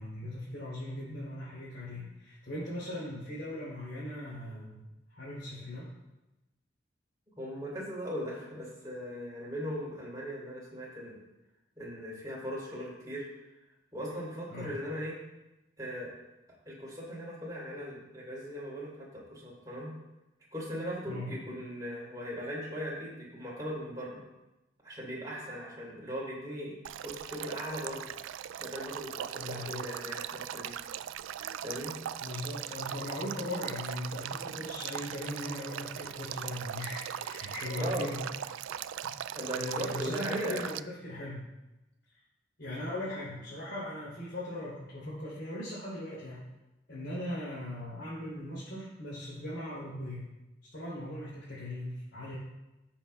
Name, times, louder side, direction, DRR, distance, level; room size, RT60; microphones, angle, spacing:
voice 1, 0.0-5.9 14.5-14.7 21.1-21.3 29.3-29.8 32.2-38.2 39.0-39.1 39.5-41.4 42.6-46.4 46.9-50.3 50.7-52.3, left 1 dB, 65° left, -9 dB, 3.4 m, -39 dB
voice 2, 7.4-11.2 11.8-13.3 13.9-15.2 15.8-16.1 16.7-19.9 20.5-24.2 24.8-26.7 27.0-28.1 28.6-30.7 31.6-32.0 37.8-38.1 39.3-40.6, equal, 20° right, -6 dB, 3.5 m, -38 dB
Male speech man speaking / Stream / Trickle dribble, 26.8-40.8, right 10 dB, 85° right, 0.3 m, -39 dB
17.0 x 7.2 x 2.4 m, 1.0 s
head